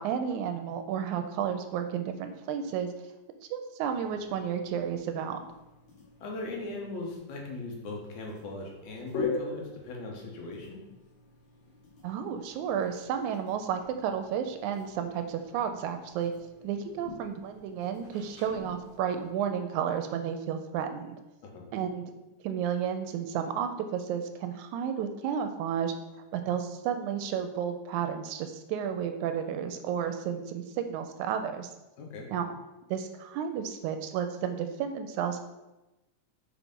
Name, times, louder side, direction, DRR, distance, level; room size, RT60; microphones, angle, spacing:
voice 1, 0.0-2.9 3.5-5.4 12.0-16.3 16.6-21.2 21.7-22.1 22.4-25.9 26.3-31.7 32.3-32.5 32.9-35.4, right 8 dB, 80° right, 7 dB, 1.9 m, -32 dB
sound 1, 3.8-19.3, left 4 dB, 45° left, 2.2 m, -43 dB
voice 2, 6.2-10.8 21.5-21.7 32.0-32.3, left 2 dB, 70° left, 0 dB, 2.5 m, -39 dB
5.6 x 4.9 x 5.2 m, 1.0 s
omnidirectional pair, 3.6 m